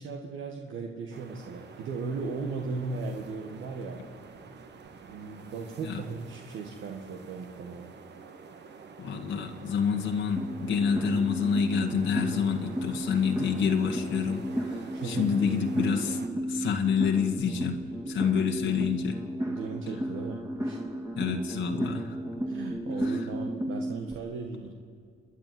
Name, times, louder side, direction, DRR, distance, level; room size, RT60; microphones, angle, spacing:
voice 1, 0.0-4.0 5.1-7.9 14.9-15.3 18.7-18.9 19.4-20.8 22.5-24.7, right 4 dB, 80° right, 2 dB, 1.9 m, -37 dB
sound 1, 1.1-16.3, right 5 dB, 60° right, 1.9 m, -49 dB
voice 2, 9.0-16.2 16.5-17.8 18.1-19.2 21.2-22.2 23.0-23.3, left 6 dB, 70° left, 3 dB, 1.8 m, -28 dB
sound 2, 10.4-24.2, right 1 dB, 15° right, 2.3 m, -34 dB
29.0 x 10.0 x 9.4 m, 2.3 s
cardioid pair, 90°, 20 cm